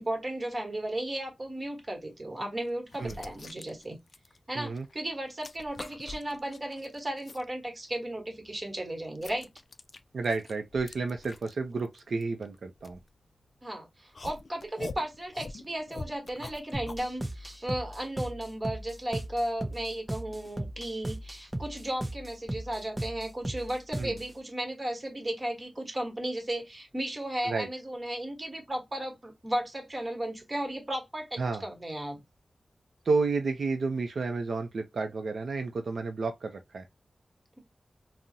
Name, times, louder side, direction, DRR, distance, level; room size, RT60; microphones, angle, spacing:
voice 1, 0.0-4.0 4.5-9.5 13.6-32.2, right 1 dB, 30° right, 1.1 m, -35 dB
sound 1, 1.8-2.0 2.6-4.9 5.2-7.5 8.0-13.6 14.1-17.1, left 3 dB, 55° left, 0.3 m, -45 dB
voice 2, 4.6-4.9 10.1-13.0 24.0-24.2 27.4-27.7 31.4-31.6 33.1-36.9, right 4 dB, 85° right, 0.4 m, -31 dB
sound 2, 16.7-24.3, right 1 dB, 15° right, 0.5 m, -37 dB
3.7 x 2.0 x 2.7 m
wide cardioid pair, 105°, 0 cm